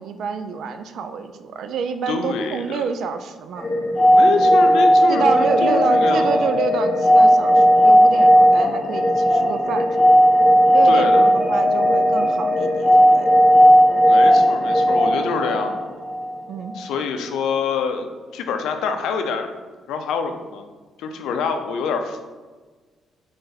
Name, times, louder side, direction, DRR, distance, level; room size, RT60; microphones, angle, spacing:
voice 1, 0.0-3.7 4.2-4.5 5.1-10.0 10.7-13.3 16.5-16.7, right 6 dB, 70° right, 9 dB, 0.3 m, -27 dB
voice 2, 2.1-2.8 4.1-6.5 10.8-11.2 14.1-15.9 16.7-18.1 18.3-19.5 19.9-20.7 21.0-22.2, left 5 dB, 85° left, 6 dB, 0.4 m, -26 dB
sound 1, 3.6-16.3, equal, 25° left, 0.8 m, -15 dB
3.9 x 3.3 x 3.9 m, 1.3 s
cardioid pair, 90°, 0 cm